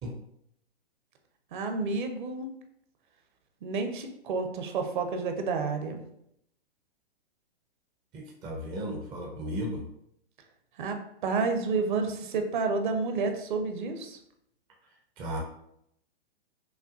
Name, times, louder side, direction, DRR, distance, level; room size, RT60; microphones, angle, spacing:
voice 1, 1.5-2.5 3.6-6.0 10.8-14.2, right 4 dB, 50° right, 5 dB, 0.7 m, -30 dB
voice 2, 8.1-9.8 15.2-15.4, equal, 15° right, 0 dB, 0.4 m, -35 dB
5.6 x 2.3 x 2.5 m, 0.74 s
figure-of-eight pair, 115°, 31 cm